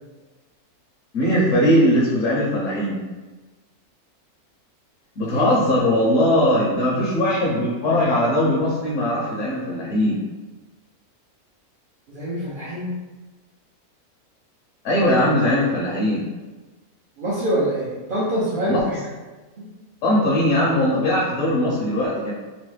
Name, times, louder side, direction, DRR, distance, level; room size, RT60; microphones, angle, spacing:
voice 1, 1.1-3.0 5.2-10.2 14.8-16.2 18.7-18.8 20.0-22.3, left 1 dB, 65° left, -5 dB, 0.9 m, -20 dB
voice 2, 12.1-12.9 17.2-19.0 19.6-19.7, right 1 dB, 55° right, -9 dB, 0.5 m, -25 dB
3.1 x 2.0 x 3.1 m, 1.3 s
omnidirectional pair, 1.6 m